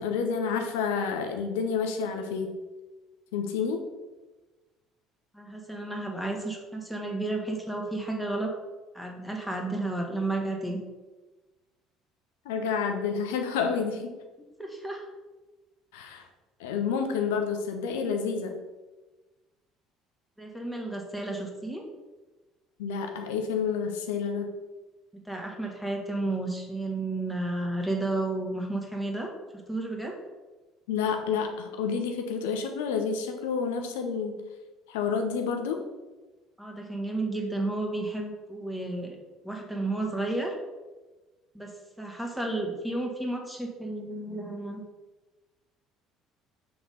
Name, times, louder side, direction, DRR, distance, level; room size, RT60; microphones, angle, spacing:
voice 1, 0.0-2.5 3.3-3.9 12.4-14.1 15.9-16.3 16.6-18.6 22.8-24.5 30.9-34.4 34.9-35.8, left 6 dB, 80° left, 5 dB, 0.8 m, -29 dB
voice 2, 5.3-8.5 8.9-10.8 14.4-15.1 20.4-21.8 25.2-29.3 29.7-30.1 36.6-39.2 39.4-40.5 41.5-41.7 42.0-44.8, right 2 dB, ahead, 0 dB, 1.8 m, -32 dB
5.9 x 4.0 x 5.4 m, 1.2 s
hypercardioid pair, 65°, 0 cm